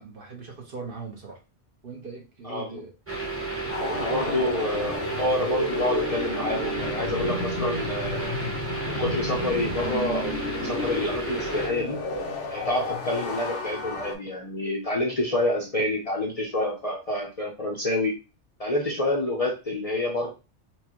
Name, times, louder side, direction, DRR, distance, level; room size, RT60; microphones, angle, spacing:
voice 1, 0.0-1.4 1.8-2.9 3.6-4.6 5.8-6.3, right 2 dB, 50° right, 1 dB, 1.1 m, -38 dB
voice 2, 2.4-2.9 3.9-8.3 8.9-12.0 12.5-18.1 18.6-20.3, left 1 dB, 40° left, -1 dB, 0.7 m, -28 dB
sound 1, 3.1-11.7, right 3 dB, 10° right, 0.9 m, -32 dB
sound 2, 3.7-14.2, left 3 dB, 75° left, 1.1 m, -32 dB
4.5 x 2.3 x 3.0 m, 0.30 s
omnidirectional pair, 1.2 m